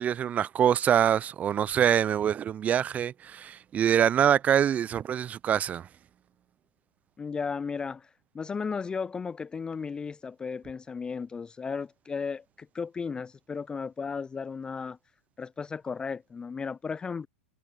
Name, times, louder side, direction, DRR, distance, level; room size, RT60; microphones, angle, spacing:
voice 1, 0.0-5.9, right 9 dB, 25° right, 0.7 m, -25 dB
voice 2, 7.2-15.0 15.4-17.3, left 5 dB, 15° left, 0.4 m, -35 dB
figure-of-eight pair, 95°, 6 cm